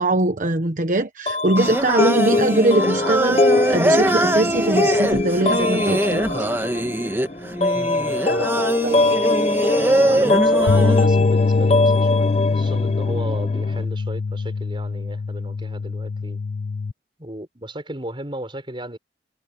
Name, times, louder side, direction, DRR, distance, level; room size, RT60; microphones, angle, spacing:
voice 1, 0.0-6.5 8.4-9.0, right 2 dB, 45° right, 1.1 m, -22 dB
sound 1, 1.3-13.8, left 2 dB, 35° left, 0.8 m, -22 dB
Singing, 1.6-11.1, right 1 dB, 15° right, 1.3 m, -22 dB
voice 2, 7.7-8.6 8.9-9.2 10.1-16.4 17.2-19.0, right 1 dB, 30° right, 6.7 m, -34 dB
sound 2, 10.7-16.9, left 4 dB, 60° left, 0.4 m, -22 dB
head